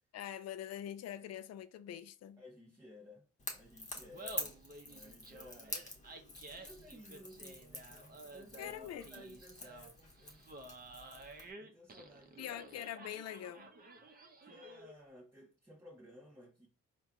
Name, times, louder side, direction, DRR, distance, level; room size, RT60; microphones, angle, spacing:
voice 1, 0.1-2.4 8.6-9.0 12.4-13.7, left 11 dB, 55° left, 0.5 m, -44 dB
voice 2, 2.4-5.9 6.5-10.4 11.6-12.5 14.4-16.7, left 1 dB, 10° right, 0.9 m, -56 dB
Crackle / Crack, 3.4-11.5, left 2 dB, 25° left, 1.1 m, -47 dB
Laughter, 4.0-15.0, right 1 dB, 30° right, 0.7 m, -53 dB
4.4 x 2.2 x 3.7 m
cardioid pair, 90°, 30 cm